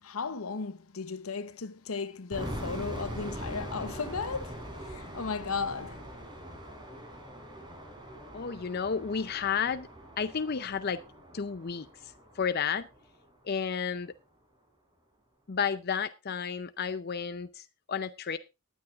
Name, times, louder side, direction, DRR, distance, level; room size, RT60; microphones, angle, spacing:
voice 1, 0.0-6.1, left 5 dB, 85° left, 0.9 m, -35 dB
sound 1, 2.3-13.2, equal, 20° right, 4.0 m, -42 dB
voice 2, 8.3-9.9 10.2-11.0 11.3-11.9 12.4-12.9 13.4-14.1 15.5-18.4, left 6 dB, 50° left, 0.6 m, -32 dB
18.5 x 10.0 x 2.4 m
head